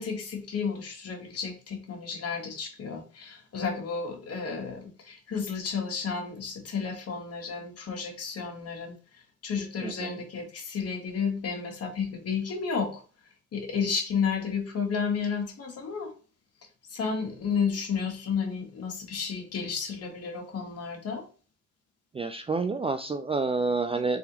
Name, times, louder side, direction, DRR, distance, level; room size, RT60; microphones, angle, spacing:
voice 1, 0.0-8.9 9.4-13.0 13.5-16.1 16.9-21.2, left 6 dB, 55° left, 2 dB, 1.5 m, -32 dB
voice 2, 9.8-10.2 22.1-24.2, right 4 dB, 20° right, 7 dB, 0.3 m, -29 dB
3.6 x 3.3 x 2.9 m, 0.37 s
cardioid pair, 90°, 30 cm